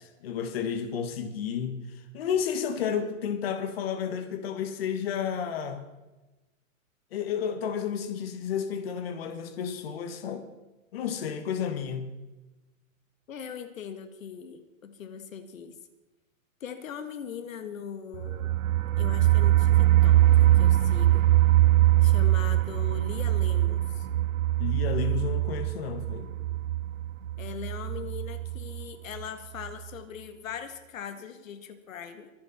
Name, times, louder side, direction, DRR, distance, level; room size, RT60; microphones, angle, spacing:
voice 1, 0.0-5.9 7.1-10.4 10.9-12.1 24.6-26.3, left 7 dB, 45° left, 7 dB, 1.8 m, -31 dB
voice 2, 13.3-15.8 16.6-18.6 19.0-21.3 22.0-24.1 27.4-32.3, left 7 dB, 75° left, 9 dB, 2.0 m, -40 dB
sound 1, 18.1-28.8 29.2-29.3 29.6-29.7, right 15 dB, 80° right, 0.8 m, -23 dB
24.0 x 9.7 x 4.4 m, 1.1 s
supercardioid pair, 175°, 40 cm